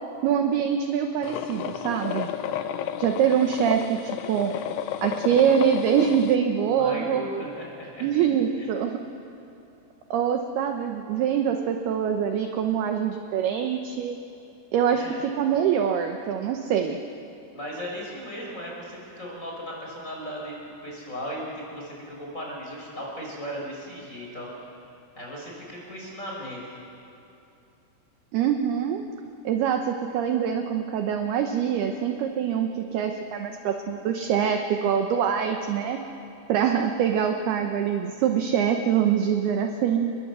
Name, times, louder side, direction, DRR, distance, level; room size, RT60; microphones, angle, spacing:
voice 1, 0.2-2.3 3.0-4.6 5.0-7.2 8.0-9.1 10.1-14.2 14.7-17.0 28.3-29.0 29.4-36.0 36.5-40.2, right 8 dB, 80° right, 5 dB, 2.3 m, -24 dB
sound 1, 1.2-6.4, left 9 dB, 85° left, 2.4 m, -32 dB
voice 2, 6.6-8.1 8.6-8.7 14.9-15.2 17.5-24.7 25.2-26.6, equal, 15° left, -3 dB, 5.6 m, -36 dB
29.5 x 21.0 x 8.1 m, 2.7 s
omnidirectional pair, 5.9 m